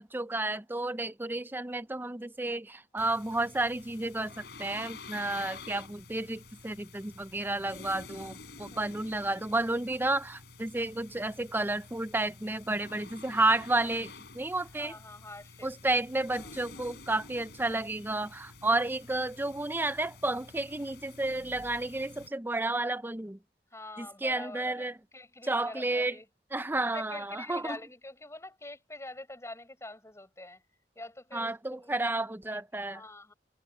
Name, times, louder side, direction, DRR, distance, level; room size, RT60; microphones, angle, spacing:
voice 1, 0.0-14.9 15.6-23.4 24.0-25.0 25.4-26.2 26.5-27.8 31.3-33.0, right 2 dB, 10° right, 0.6 m, -31 dB
sound 1, 3.0-22.3, left 4 dB, 65° left, 7.0 m, -50 dB
voice 2, 14.6-16.0 16.3-16.9 23.7-26.3 26.8-30.6 30.9-32.0 32.5-33.3, left 2 dB, 15° left, 7.7 m, -45 dB
head